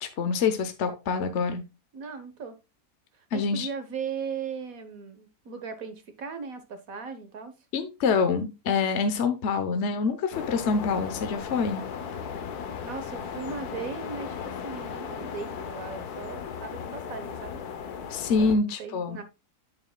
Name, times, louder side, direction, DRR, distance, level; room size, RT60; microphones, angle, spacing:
voice 1, 0.0-1.6 3.3-3.7 7.7-11.8 18.1-19.2, left 5 dB, 50° left, 1.1 m, -26 dB
voice 2, 1.9-2.6 3.2-7.5 12.8-14.4 14.6-17.6 18.4-19.2, right 5 dB, 65° right, 1.6 m, -38 dB
sound 1, 10.3-18.6, left 7 dB, 80° left, 1.4 m, -36 dB
8.8 x 7.1 x 2.3 m
omnidirectional pair, 1.6 m